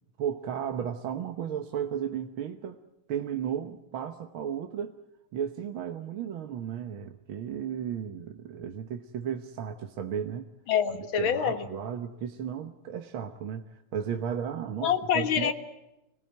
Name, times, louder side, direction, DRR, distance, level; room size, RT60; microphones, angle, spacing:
voice 1, 0.2-2.8 3.1-5.0 5.3-10.5 11.2-15.5, right 8 dB, 70° right, 6 dB, 1.9 m, -34 dB
voice 2, 10.7-11.6 14.8-15.5, left 8 dB, 65° left, 7 dB, 2.3 m, -26 dB
26.5 x 19.0 x 9.1 m, 0.91 s
omnidirectional pair, 2.3 m